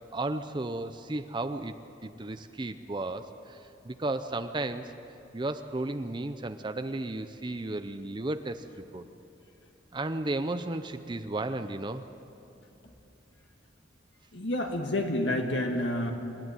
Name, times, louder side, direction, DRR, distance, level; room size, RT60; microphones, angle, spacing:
voice 1, 0.1-1.7 2.0-4.9 5.3-8.6 8.9-9.0 9.9-12.1, right 2 dB, 25° right, 9 dB, 0.6 m, -34 dB
voice 2, 14.3-16.1, left 1 dB, 70° left, 2 dB, 1.7 m, -29 dB
27.0 x 11.5 x 9.3 m, 3.0 s
head